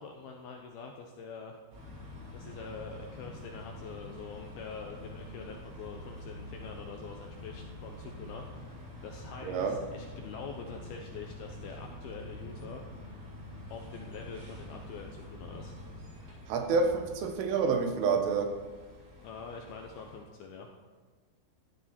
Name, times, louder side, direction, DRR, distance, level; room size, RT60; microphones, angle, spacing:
voice 1, 0.0-1.6 2.0-13.1 13.7-15.8 19.2-20.7, left 5 dB, 75° left, 2 dB, 2.3 m, -45 dB
sound 1, 1.7-20.2, left 1 dB, 55° right, 6.0 m, -46 dB
voice 2, 9.4-9.8 16.5-18.5, right 4 dB, 85° right, 5 dB, 3.9 m, -28 dB
15.5 x 12.5 x 4.4 m, 1.4 s
omnidirectional pair, 5.6 m